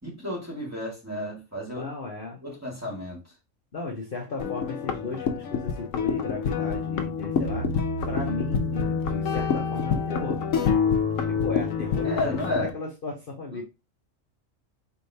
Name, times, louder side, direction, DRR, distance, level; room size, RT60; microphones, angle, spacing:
voice 1, 0.0-1.9 2.4-3.2 12.0-12.7 13.5-13.6, left 1 dB, 10° right, 1.7 m, -32 dB
voice 2, 1.8-2.4 3.7-7.7 8.1-10.4 11.3-13.6, left 3 dB, 50° left, 0.9 m, -35 dB
sound 1, 4.4-12.7, left 5 dB, 80° left, 1.1 m, -27 dB
4.5 x 3.3 x 2.7 m
omnidirectional pair, 1.4 m